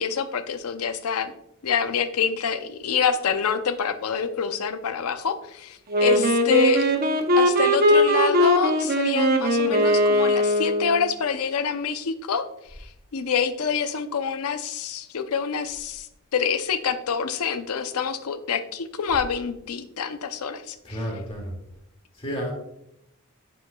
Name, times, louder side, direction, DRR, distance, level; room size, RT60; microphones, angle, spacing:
voice 1, 0.0-1.3 1.6-6.9 7.4-12.4 13.1-16.1 16.3-21.0, left 6 dB, 85° left, 10 dB, 0.6 m, -26 dB
Wind instrument woodwind instrument, 5.9-11.1, equal, 45° right, 0.7 m, -20 dB
voice 2, 20.8-21.5 22.1-22.5, equal, 25° left, -1 dB, 2.1 m, -31 dB
9.4 x 5.3 x 2.2 m, 0.81 s
head